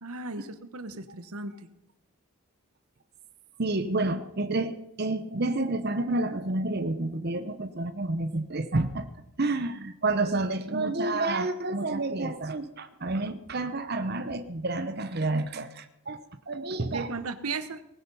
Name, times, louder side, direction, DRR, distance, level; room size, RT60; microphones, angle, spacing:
voice 1, 0.0-1.5 16.9-17.8, right 3 dB, 85° right, 11 dB, 1.2 m, -35 dB
voice 2, 3.6-9.1 9.4-17.1, right 2 dB, 45° right, 9 dB, 0.9 m, -29 dB
19.5 x 10.5 x 5.5 m, 0.85 s
head